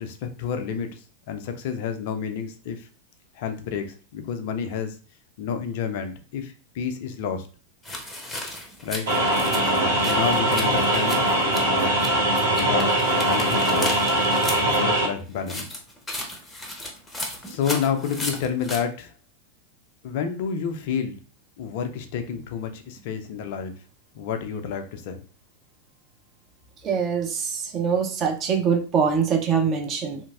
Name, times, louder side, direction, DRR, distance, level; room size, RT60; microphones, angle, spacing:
voice 1, 0.0-2.9 3.3-5.0 5.4-7.5 8.8-9.1 10.0-11.2 12.5-14.0 14.7-15.7 17.5-19.1 20.0-21.2 21.6-23.7 24.2-25.2, left 7 dB, 50° left, 7 dB, 0.4 m, -29 dB
sound 1, 7.8-12.1 12.4-14.8 15.4-18.8, left 1 dB, 10° left, 0.6 m, -35 dB
sound 2, 9.1-15.1, right 1 dB, 65° right, 1.0 m, -21 dB
voice 2, 26.8-30.2, right 6 dB, 30° right, 2 dB, 0.6 m, -23 dB
3.0 x 2.5 x 2.3 m, 0.37 s
figure-of-eight pair, 90°, 0 cm